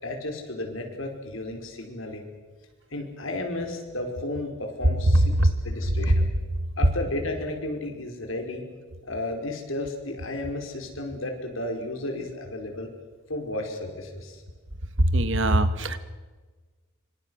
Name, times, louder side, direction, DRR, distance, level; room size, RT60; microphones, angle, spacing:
voice 1, 0.0-2.3 2.9-5.3 5.6-6.2 6.8-8.6 9.1-12.9 13.3-14.4, left 2 dB, 70° left, 3 dB, 5.1 m, -33 dB
voice 2, 15.0-16.0, right 1 dB, 60° right, 11 dB, 1.7 m, -21 dB
27.0 x 25.5 x 6.5 m, 1.4 s
head